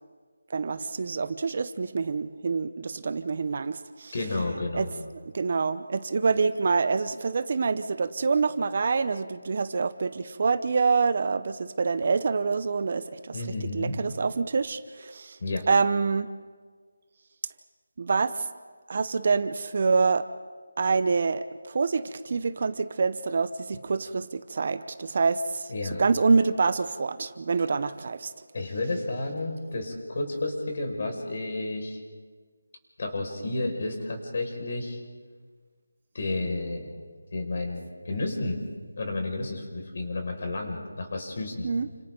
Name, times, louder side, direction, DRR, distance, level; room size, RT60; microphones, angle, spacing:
voice 1, 0.5-4.1 4.7-4.9 5.2-13.4 13.7-15.4 15.7-16.3 18.0-18.5 18.9-20.3 20.8-28.3 41.6-41.9, right 4 dB, 40° right, 13 dB, 0.8 m, -26 dB
voice 2, 4.1-4.9 13.3-13.9 15.4-15.6 25.7-26.0 28.5-32.0 33.0-35.0 36.1-36.9 37.3-38.6 39.0-41.7, left 2 dB, 45° left, 2 dB, 5.6 m, -31 dB
29.5 x 27.0 x 3.9 m, 1.5 s
figure-of-eight pair, 170°, 0 cm